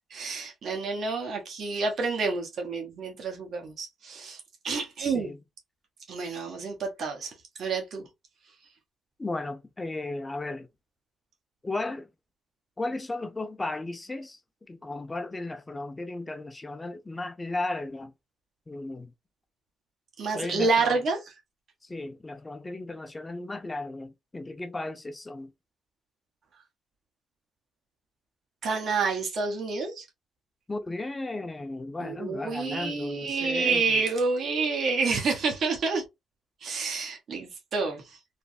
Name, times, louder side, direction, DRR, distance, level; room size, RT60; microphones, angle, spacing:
voice 1, 0.1-5.3 6.1-7.3 7.6-8.1 20.2-21.2 28.6-30.0 32.0-36.0 36.6-38.2, right 4 dB, 65° right, 1.0 m, -29 dB
voice 2, 5.0-5.4 9.2-10.7 11.6-12.1 12.8-14.4 14.7-18.1 18.7-19.1 20.3-21.0 21.8-25.5 30.7-34.0, left 2 dB, 25° left, 0.6 m, -35 dB
3.2 x 2.0 x 2.6 m
supercardioid pair, 55°, 0 cm